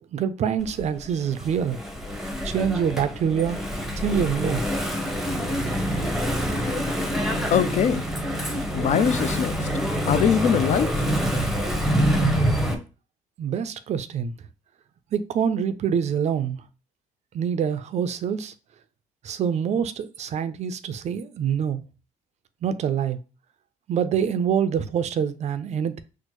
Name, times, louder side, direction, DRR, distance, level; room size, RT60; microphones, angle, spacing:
voice 1, 0.1-1.8 2.4-3.6 4.0-4.6 13.4-14.3 15.1-16.6 17.3-18.5 19.2-21.8 22.6-23.2 23.9-26.0, right 8 dB, 45° right, 0.4 m, -25 dB
Engine / Mechanisms, 0.6-12.7, equal, ahead, 0.7 m, -26 dB
voice 2, 7.5-8.0 8.7-9.7 10.1-10.9, left 8 dB, 50° left, 0.4 m, -22 dB
4.3 x 2.0 x 3.0 m
supercardioid pair, 75°, 15 cm